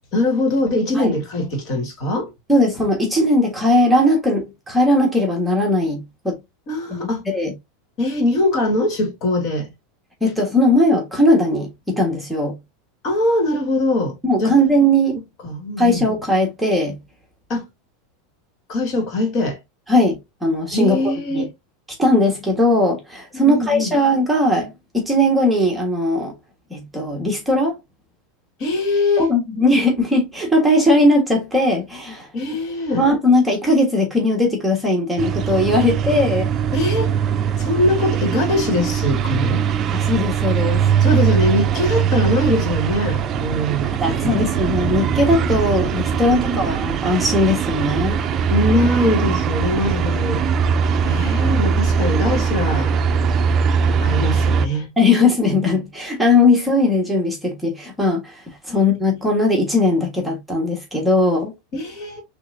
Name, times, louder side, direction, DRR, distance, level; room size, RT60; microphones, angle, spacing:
voice 1, 0.1-2.3 6.7-7.2 8.0-9.7 13.0-14.6 15.4-16.0 17.5-17.6 18.7-19.6 20.7-21.5 23.3-23.9 28.6-29.3 32.3-33.1 36.7-37.2 37.6-39.6 41.0-44.4 46.2-46.8 48.5-50.5 51.0-52.9 54.0-54.9 58.7-58.8 61.7-62.2, left 1 dB, 40° left, 2.4 m, -22 dB
voice 2, 2.5-6.4 7.3-7.5 10.2-12.5 14.2-15.2 15.8-17.0 19.9-21.0 21.3-21.4 22.0-26.3 26.7-27.7 29.2-32.3 33.0-36.5 39.9-40.8 44.0-48.2 55.0-61.5, left 1 dB, 5° right, 1.5 m, -18 dB
sound 1, 35.2-54.7, right 7 dB, 30° right, 0.5 m, -20 dB
6.1 x 3.2 x 2.7 m
supercardioid pair, 140°, 0 cm